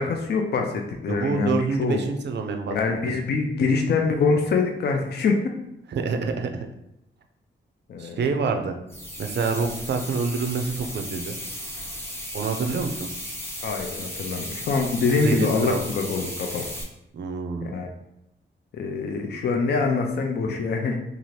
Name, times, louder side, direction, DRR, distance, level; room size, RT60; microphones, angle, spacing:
voice 1, 0.0-2.0 2.7-5.4 7.9-8.2 13.6-16.6 17.6-17.9 18.8-21.0, left 4 dB, 55° left, 3 dB, 0.4 m, -24 dB
voice 2, 1.1-2.8 5.9-6.7 8.0-8.8 9.2-11.4 12.3-13.1 15.1-15.8 17.1-17.8, right 4 dB, 60° right, 5 dB, 0.4 m, -27 dB
sound 1, 8.9-16.8, equal, 10° left, 0.6 m, -35 dB
2.7 x 2.4 x 3.1 m, 0.85 s
wide cardioid pair, 110°, 21 cm